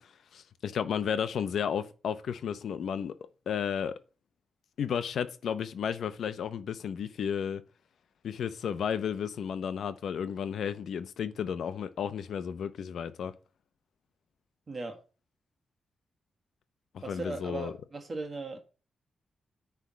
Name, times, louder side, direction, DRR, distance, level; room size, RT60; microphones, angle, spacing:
voice 1, 0.0-3.1 3.5-3.9 4.8-7.6 8.2-13.3 16.9-17.7, left 8 dB, 70° left, 0.7 m, -33 dB
voice 2, 14.7-15.0 17.0-18.6, right 3 dB, 25° right, 1.6 m, -38 dB
9.8 x 3.5 x 6.1 m
wide cardioid pair, 180°, 0 cm